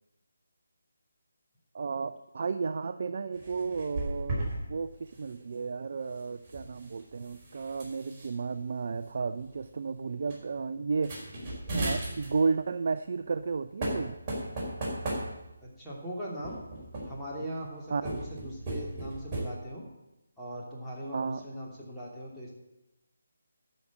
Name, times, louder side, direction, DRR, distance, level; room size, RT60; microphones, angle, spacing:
voice 1, 1.7-11.2 11.7-14.2 17.9-18.0 21.1-21.4, right 4 dB, 50° right, 10 dB, 0.5 m, -33 dB
sound 1, 3.3-4.6 4.9-5.2 6.3-8.3 9.0-9.1 9.4-9.7 10.3-10.4 10.9-12.5 13.4-13.5 13.8-15.7 16.4-17.3 18.0-19.4, right 1 dB, 20° right, 5.2 m, -36 dB
voice 2, 15.6-16.6 17.1-19.8 20.4-22.5, equal, 5° left, -8 dB, 2.9 m, -40 dB
12.0 x 6.4 x 8.5 m, 0.96 s
figure-of-eight pair, 155°, 0 cm